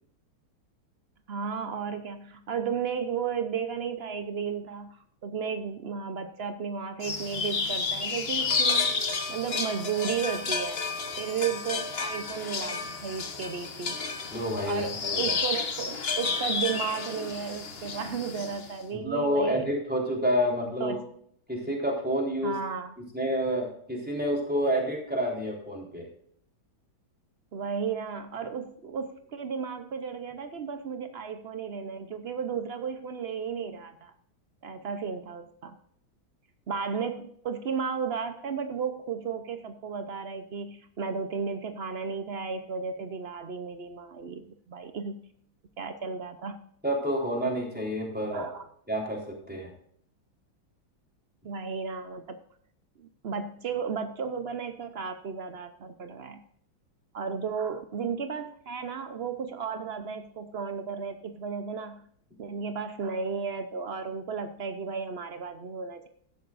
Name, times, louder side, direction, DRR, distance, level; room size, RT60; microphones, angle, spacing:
voice 1, 1.3-9.0 9.3-10.8 11.2-14.0 14.6-19.6 20.8-21.0 22.4-22.9 27.5-34.1 34.6-35.8 36.7-45.2 45.8-46.6 48.3-48.7 51.4-52.4 53.0-56.4 57.1-62.1 62.4-66.1, right 6 dB, 70° right, 8 dB, 0.5 m, -34 dB
sound 1, 7.0-18.7, left 4 dB, 35° left, 1.1 m, -31 dB
voice 2, 14.3-15.4 19.0-21.0 21.5-22.5 23.1-26.1 46.8-48.4 48.9-49.7, equal, 5° right, -2 dB, 3.6 m, -29 dB
15.0 x 11.5 x 2.5 m, 0.64 s
omnidirectional pair, 2.2 m